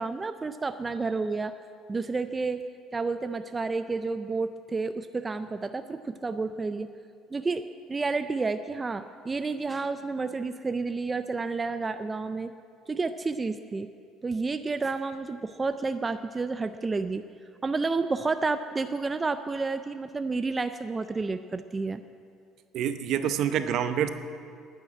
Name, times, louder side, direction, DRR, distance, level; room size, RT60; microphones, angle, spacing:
voice 1, 0.0-1.5 1.9-2.6 2.9-6.9 7.3-12.5 12.9-13.9 14.2-17.2 17.6-22.0, right 3 dB, 20° right, 10 dB, 0.4 m, -30 dB
voice 2, 22.7-24.1, right 9 dB, 60° right, 10 dB, 0.8 m, -27 dB
9.4 x 9.2 x 10.0 m, 2.3 s
cardioid pair, 140°, 0 cm